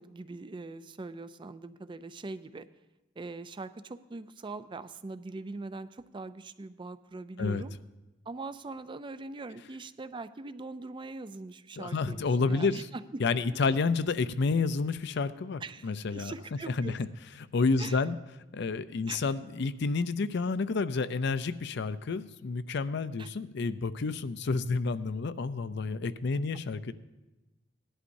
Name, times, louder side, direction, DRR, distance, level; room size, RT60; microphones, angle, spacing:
voice 1, 0.0-2.7 3.2-7.7 8.3-13.2 13.5-13.7 15.6-17.0 17.8-18.0 19.1-19.2 23.2-23.3, right 3 dB, 25° right, 13 dB, 0.4 m, -42 dB
voice 2, 11.8-12.9 13.2-16.3 16.7-17.1 17.5-18.2 18.5-26.9, left 4 dB, 65° left, 14 dB, 0.5 m, -30 dB
18.5 x 11.5 x 2.6 m, 1.1 s
head